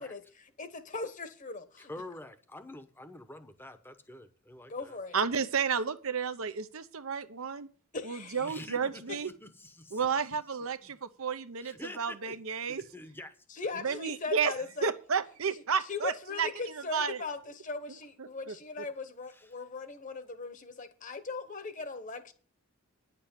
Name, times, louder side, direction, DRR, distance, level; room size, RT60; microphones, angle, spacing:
voice 1, 0.0-1.9 4.7-5.2 7.9-8.6 9.1-9.2 13.5-14.9 15.8-22.3, left 4 dB, 35° left, 1.1 m, -39 dB
voice 2, 1.8-5.0 8.4-10.1 10.8-10.9 11.6-12.4 12.7-13.3 13.9-14.0 19.3-19.5, left 1 dB, 10° left, 0.9 m, -47 dB
voice 3, 5.1-7.7 8.0-9.3 9.9-12.8 13.8-14.5 14.8-16.1 16.4-16.5 16.9-17.2 18.2-18.6, right 6 dB, 70° right, 0.8 m, -32 dB
10.0 x 7.0 x 7.3 m
head